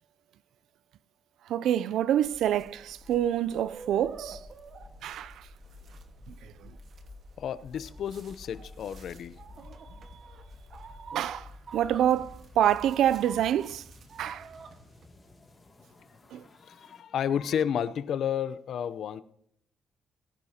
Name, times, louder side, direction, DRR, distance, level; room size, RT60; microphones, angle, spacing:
voice 1, 1.5-4.4 5.0-5.5 6.3-6.7 11.1-13.8 14.2-14.5 16.3-16.4, right 11 dB, 80° right, 0.4 m, -27 dB
sound 1, 2.1-17.0, left 2 dB, 30° left, 2.4 m, -52 dB
sound 2, 2.3-15.1, right 5 dB, 55° right, 1.5 m, -49 dB
voice 2, 7.4-9.3 16.6-19.2, left 8 dB, 70° left, 0.6 m, -31 dB
19.0 x 10.5 x 2.9 m
cardioid pair, 90°, 0 cm